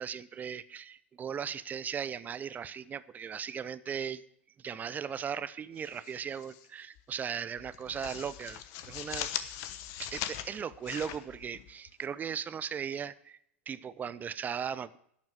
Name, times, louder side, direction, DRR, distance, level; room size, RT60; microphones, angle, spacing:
voice 1, 0.0-4.2 4.6-9.3 10.0-13.4 13.7-15.0, right 7 dB, 25° right, 15 dB, 0.7 m, -37 dB
sound 1, 5.8-6.7 7.0-7.2 7.6-12.0, left 11 dB, 50° left, 1.1 m, -40 dB
12.0 x 5.9 x 9.3 m, 0.69 s
hypercardioid pair, 95°, 7 cm